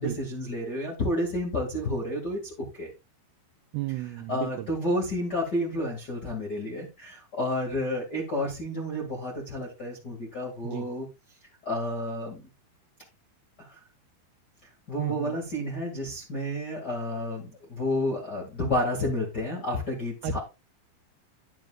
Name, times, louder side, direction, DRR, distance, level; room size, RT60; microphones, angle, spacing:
voice 1, 0.0-2.9 4.3-11.1 11.6-12.4 13.6-13.8 14.9-20.4, left 1 dB, 45° left, 1.3 m, -30 dB
voice 2, 3.7-4.7 10.6-10.9 15.0-15.4 20.2-20.4, right 17 dB, 90° right, 2.3 m, -33 dB
10.5 x 10.5 x 2.4 m
omnidirectional pair, 5.3 m